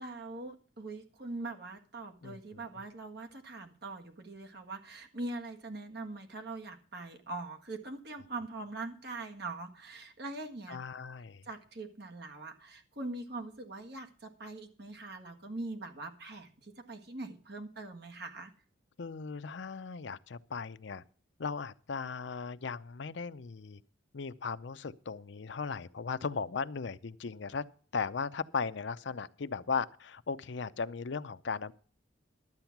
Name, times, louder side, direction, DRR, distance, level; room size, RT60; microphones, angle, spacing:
voice 1, 0.0-10.8 11.4-18.5, right 2 dB, 55° right, 1.7 m, -42 dB
voice 2, 2.2-2.6 10.7-11.4 19.0-21.0 21.4-23.8 24.1-27.6 27.9-31.7, left 5 dB, 60° left, 0.6 m, -37 dB
12.0 x 7.9 x 5.9 m
head